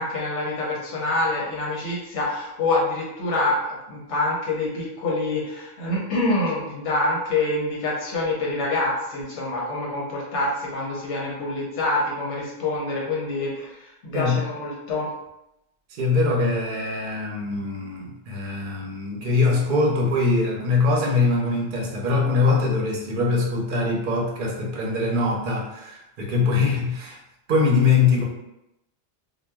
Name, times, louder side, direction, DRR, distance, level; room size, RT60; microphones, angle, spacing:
voice 1, 0.0-15.1, left 2 dB, 90° left, -4 dB, 1.1 m, -26 dB
voice 2, 15.9-27.2 27.5-28.2, left 3 dB, 55° right, -1 dB, 0.7 m, -22 dB
2.9 x 2.2 x 2.2 m, 0.88 s
omnidirectional pair, 1.2 m